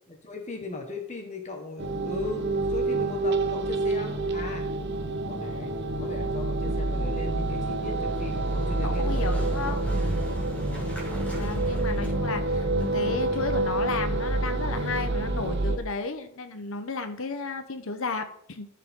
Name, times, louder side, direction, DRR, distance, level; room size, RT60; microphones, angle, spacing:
voice 1, 0.2-4.6 5.3-5.7 6.0-9.2 9.5-10.0 10.5-11.0, left 2 dB, 30° left, 2 dB, 1.4 m, -38 dB
sound 1, 1.8-15.8, right 2 dB, 50° right, 0.9 m, -27 dB
Motorcycle, 6.7-13.5, equal, 5° left, 2.1 m, -41 dB
voice 2, 8.8-9.9 11.3-18.7, left 4 dB, 65° left, 9 dB, 0.9 m, -33 dB
13.5 x 5.7 x 3.7 m, 0.65 s
head